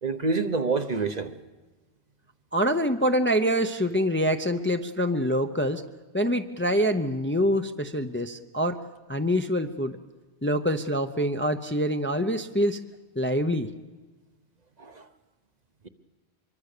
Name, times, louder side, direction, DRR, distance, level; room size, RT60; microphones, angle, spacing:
voice 1, 0.0-1.3 14.8-15.1, right 4 dB, 40° right, 1.0 m, -27 dB
voice 2, 2.5-5.8 6.1-8.8 9.1-10.0 10.4-12.8 13.2-13.7, equal, 15° left, 0.6 m, -25 dB
24.5 x 23.0 x 6.7 m
omnidirectional pair, 1.1 m